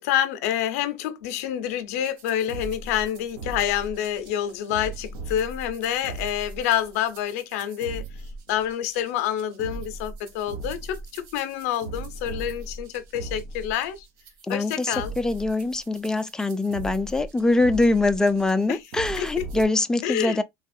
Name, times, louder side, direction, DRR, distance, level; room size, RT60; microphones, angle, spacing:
voice 1, 0.0-8.1 8.5-14.1 14.5-15.1 18.7-18.8 19.2-19.3 20.0-20.4, left 11 dB, 85° left, 0.6 m, -27 dB
sound 1, 2.0-19.6, right 3 dB, 65° right, 0.9 m, -38 dB
voice 2, 14.4-20.4, left 2 dB, 10° left, 0.4 m, -23 dB
3.6 x 2.4 x 2.6 m
supercardioid pair, 125°, 8 cm